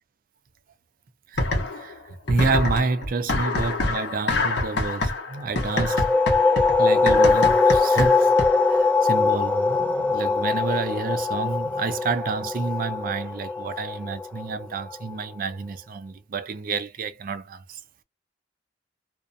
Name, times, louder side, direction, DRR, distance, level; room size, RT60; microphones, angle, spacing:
sound 1, 1.4-2.0 2.3-8.7, left 2 dB, 70° left, 0.8 m, -26 dB
voice 1, 1.7-6.1 6.4-6.5 6.8-8.3 8.6-17.8, right 4 dB, 55° right, 0.4 m, -29 dB
sound 2, 5.6-15.0, left 4 dB, 10° left, 0.4 m, -22 dB
2.4 x 2.1 x 2.5 m
head